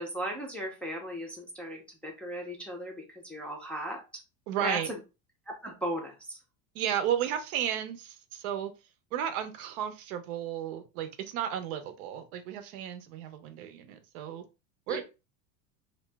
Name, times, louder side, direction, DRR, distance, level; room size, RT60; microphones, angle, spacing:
voice 1, 0.0-4.0 4.6-5.0 5.5-6.4 14.9-15.0, equal, 5° left, 0.4 m, -36 dB
voice 2, 4.5-4.9 6.7-8.7 9.1-14.4 14.9-15.0, right 10 dB, 80° right, 0.7 m, -33 dB
2.8 x 2.0 x 3.3 m
supercardioid pair, 130°, 43 cm